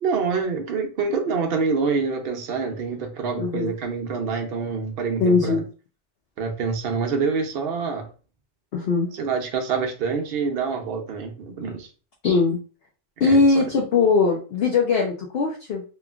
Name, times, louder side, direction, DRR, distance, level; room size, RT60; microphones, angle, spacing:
voice 1, 0.0-5.6 6.4-8.1 9.1-11.9 13.2-13.6, right 5 dB, 55° right, 3 dB, 0.7 m, -26 dB
voice 2, 3.4-3.7 5.2-5.6 8.7-9.1 12.2-12.6 13.2-15.8, left 4 dB, 60° left, 0 dB, 0.7 m, -20 dB
3.0 x 2.4 x 2.3 m, 0.36 s
omnidirectional pair, 1.3 m